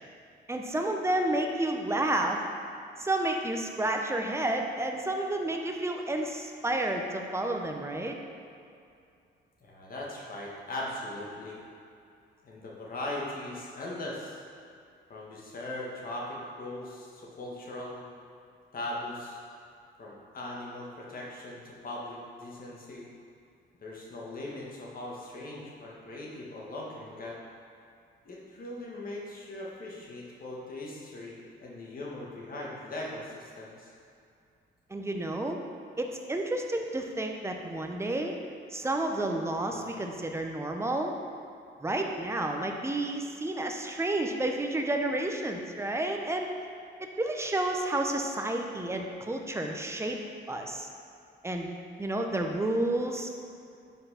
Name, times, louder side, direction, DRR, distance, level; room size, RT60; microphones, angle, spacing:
voice 1, 0.5-2.4 3.0-8.2 34.9-35.6 36.0-38.3 38.7-41.1 41.8-46.5 47.2-50.2 50.5-50.9 51.4-51.7 52.0-53.3, right 1 dB, 15° right, 3 dB, 0.7 m, -30 dB
voice 2, 9.6-11.6 12.4-14.4 15.1-18.1 18.7-19.4 20.0-23.0 23.8-27.4 28.2-33.9 39.6-40.0, left 1 dB, 45° left, -4 dB, 1.6 m, -39 dB
5.5 x 4.5 x 5.7 m, 2.5 s
cardioid pair, 90°, 20 cm